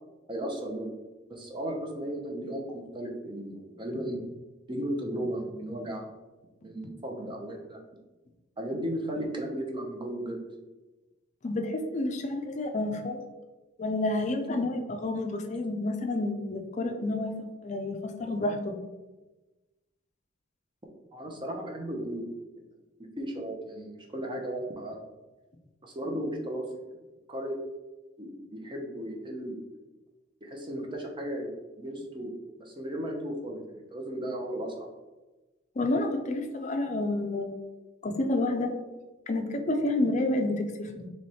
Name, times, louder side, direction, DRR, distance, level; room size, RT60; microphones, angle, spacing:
voice 1, 0.3-0.9 1.3-4.2 4.7-6.1 6.6-7.8 8.6-10.4 21.1-22.2 23.2-25.1 25.8-26.8 27.3-27.6 28.2-29.6 30.4-31.5 31.8-32.3 32.6-34.9, right 1 dB, 25° right, 1 dB, 0.7 m, -35 dB
voice 2, 11.4-13.2 13.8-17.3 17.6-18.8 35.8-37.6 38.0-38.7 39.3-41.1, left 2 dB, 35° left, 5 dB, 0.4 m, -29 dB
3.3 x 3.1 x 4.1 m, 1.1 s
head